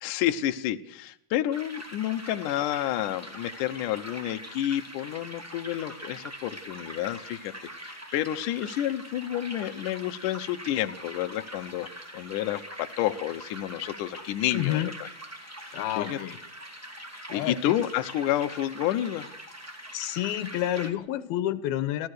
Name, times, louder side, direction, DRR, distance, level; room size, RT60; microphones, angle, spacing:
voice 1, 0.0-11.9 12.1-14.9 15.6-16.2 17.3-19.3, left 12 dB, 70° left, 8 dB, 2.3 m, -30 dB
sound 1, 1.5-20.9, equal, 5° right, 2.1 m, -43 dB
voice 2, 14.5-14.9 15.7-16.4 17.3-17.7 19.9-22.1, left 13 dB, 90° left, 15 dB, 2.9 m, -29 dB
27.0 x 15.5 x 6.6 m, 0.68 s
omnidirectional pair, 4.2 m